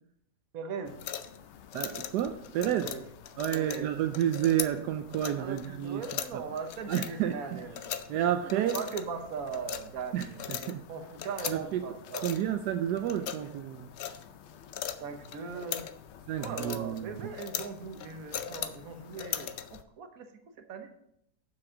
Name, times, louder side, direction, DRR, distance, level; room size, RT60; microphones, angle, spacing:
voice 1, 0.5-1.0 2.6-3.1 3.5-3.9 5.4-7.8 8.4-12.3 15.0-15.9 16.4-20.3 20.7-20.9, right 5 dB, 60° right, 6 dB, 1.4 m, -39 dB
sound 1, 0.9-19.8, left 9 dB, 75° left, 0.6 m, -41 dB
voice 2, 1.7-2.9 3.4-6.0 6.3-6.4 6.9-7.6 8.1-8.8 10.1-10.8 11.5-11.8 12.2-13.9 16.3-17.2, right 11 dB, 80° right, 7 dB, 1.1 m, -30 dB
7.6 x 6.1 x 4.9 m, 0.76 s
omnidirectional pair, 1.7 m